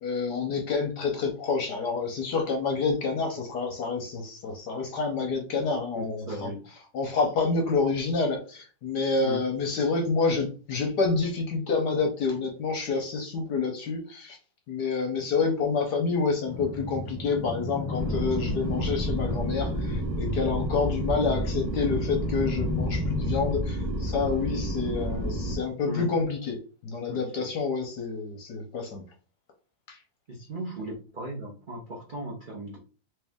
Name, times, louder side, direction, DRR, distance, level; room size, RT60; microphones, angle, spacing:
voice 1, 0.0-6.5 6.9-14.4 14.7-26.6 26.8-29.0 29.9-30.0, left 4 dB, 65° left, 3 dB, 1.0 m, -28 dB
voice 2, 6.0-6.6 9.2-9.4 25.8-26.1 27.1-27.5 30.3-32.8, right 1 dB, 75° right, -3 dB, 0.4 m, -37 dB
sound 1, 16.4-23.5, left 2 dB, 10° right, 1.3 m, -34 dB
sound 2, 18.0-25.5, equal, 45° right, 0.7 m, -30 dB
3.2 x 3.1 x 3.5 m, 0.36 s
omnidirectional pair, 2.3 m